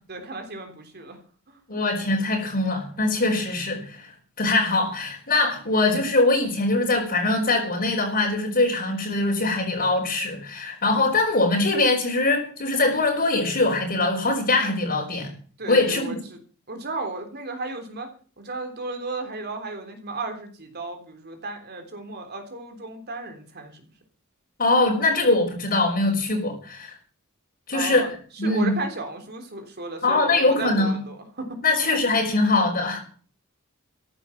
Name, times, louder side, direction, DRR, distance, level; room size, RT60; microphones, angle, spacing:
voice 1, 0.1-1.2 1.5-1.8 15.6-16.4 16.7-18.1 18.4-23.8 27.7-28.1 28.4-31.6 31.9-32.0, right 3 dB, 50° right, 3.5 m, -34 dB
voice 2, 1.7-4.1 4.4-15.3 15.7-16.2 24.6-26.9 27.7-28.1 28.4-28.8 30.0-31.0 31.6-33.0, left 2 dB, 45° left, 4.2 m, -22 dB
14.5 x 11.0 x 7.3 m
head